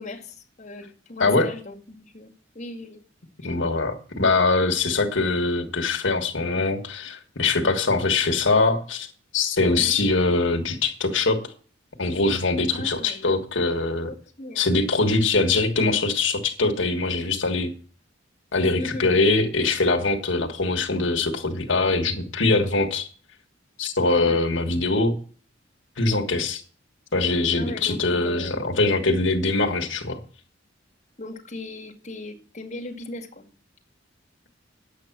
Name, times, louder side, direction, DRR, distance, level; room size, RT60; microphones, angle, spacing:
voice 1, 0.0-3.0 3.4-3.6 9.6-10.0 12.7-13.2 14.0-14.6 18.8-19.1 24.1-24.5 27.6-28.8 31.2-33.5, left 2 dB, 40° left, 0 dB, 2.0 m, -38 dB
voice 2, 1.2-1.5 3.4-9.1 9.3-11.5 12.0-14.1 14.5-17.7 18.5-23.1 23.8-25.1 26.0-26.6 27.1-30.2, left 3 dB, 75° left, 1 dB, 1.6 m, -22 dB
10.0 x 8.1 x 6.0 m, 0.41 s
head